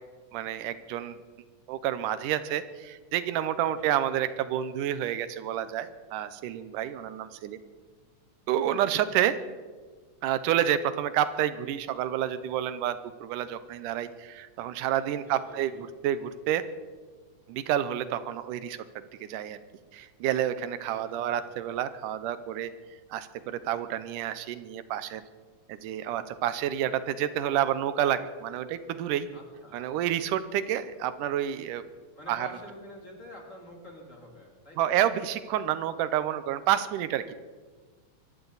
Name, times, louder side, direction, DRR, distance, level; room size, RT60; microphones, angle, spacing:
voice 1, 0.3-1.2 1.7-7.6 8.5-9.4 10.2-16.6 17.5-18.8 19.2-19.6 19.9-22.7 23.1-25.2 25.7-29.3 29.7-31.8 32.3-32.5 34.8-37.3, right 11 dB, 85° right, 13 dB, 2.3 m, -29 dB
voice 2, 3.7-4.3 8.7-9.1 15.2-15.8 20.8-21.5 29.3-29.8 32.1-35.0, equal, 25° left, -1 dB, 2.9 m, -48 dB
23.0 x 15.0 x 4.0 m, 1.4 s
omnidirectional pair, 3.6 m